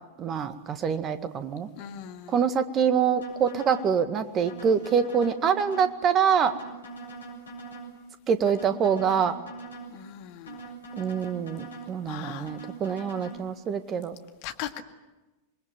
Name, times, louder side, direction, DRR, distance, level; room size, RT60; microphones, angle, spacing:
voice 1, 0.2-1.7 2.3-6.5 8.3-9.3 10.9-14.2, right 7 dB, 30° right, 10 dB, 1.9 m, -25 dB
voice 2, 1.8-2.4 9.9-10.6 12.1-12.5 14.4-14.8, left 10 dB, 45° left, 7 dB, 2.0 m, -39 dB
sound 1, 3.2-3.9 4.5-5.9 6.5-7.9 8.5-9.9 10.5-11.9 12.5-13.4, right 3 dB, 70° left, 7.0 m, -42 dB
27.0 x 21.0 x 9.4 m, 1.1 s
figure-of-eight pair, 90°, 0 cm